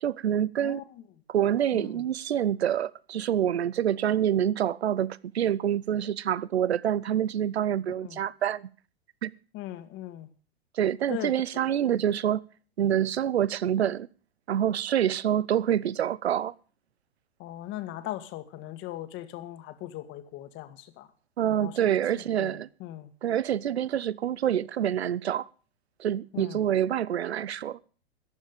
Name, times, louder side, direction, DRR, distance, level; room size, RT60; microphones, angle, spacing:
voice 1, 0.0-0.8 1.3-8.7 9.2-9.3 10.7-12.4 12.8-14.1 14.5-16.5 21.4-22.7 23.2-25.5 26.0-27.8, right 10 dB, 85° right, 0.7 m, -26 dB
voice 2, 1.7-2.1 7.9-8.2 9.5-10.3 11.1-11.3 11.8-12.0 17.4-21.1 21.5-23.1 26.3-26.7, left 14 dB, 35° left, 1.8 m, -39 dB
14.5 x 10.5 x 5.0 m
hypercardioid pair, 115°, 32 cm